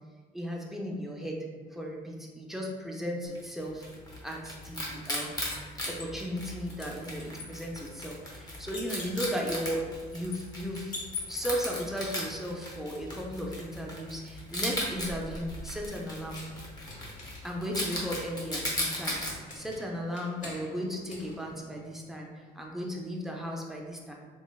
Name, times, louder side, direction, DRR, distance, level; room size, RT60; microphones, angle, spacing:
voice 1, 0.3-1.4 1.7-3.9 4.2-5.4 5.9-11.0 11.3-16.4 17.4-19.2 19.5-24.1, equal, ahead, -1 dB, 0.4 m, -36 dB
Wild animals, 3.3-19.3, left 1 dB, 25° left, 0.8 m, -38 dB
sound 1, 4.6-6.5 6.8-11.8 14.6-22.1, left 3 dB, 50° left, 0.9 m, -46 dB
3.8 x 3.1 x 2.2 m, 1.4 s
cardioid pair, 150°, 16 cm